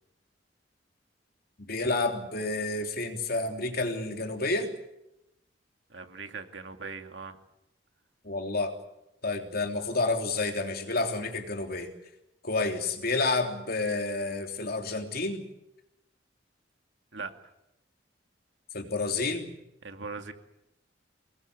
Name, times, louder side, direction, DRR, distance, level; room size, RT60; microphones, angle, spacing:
voice 1, 1.6-4.7 8.2-8.7 9.2-11.9 12.4-15.4 18.7-19.5, left 3 dB, 55° left, 4 dB, 3.3 m, -30 dB
voice 2, 5.9-7.4 17.1-17.3 19.8-20.3, right 4 dB, 75° right, 6 dB, 2.4 m, -40 dB
24.0 x 20.5 x 8.7 m, 0.89 s
head